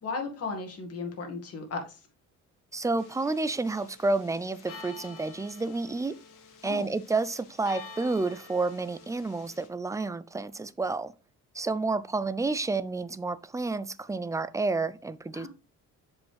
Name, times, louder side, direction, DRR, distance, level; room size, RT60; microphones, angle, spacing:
voice 1, 0.0-2.0 6.6-6.9 15.3-15.5, left 4 dB, 50° left, 2.1 m, -35 dB
voice 2, 2.7-6.1 6.6-11.1 11.5-15.5, right 3 dB, 10° right, 0.4 m, -30 dB
sound 1, 3.0-9.7, left 4 dB, 85° left, 1.8 m, -49 dB
7.1 x 5.2 x 3.4 m
cardioid pair, 130°, 31 cm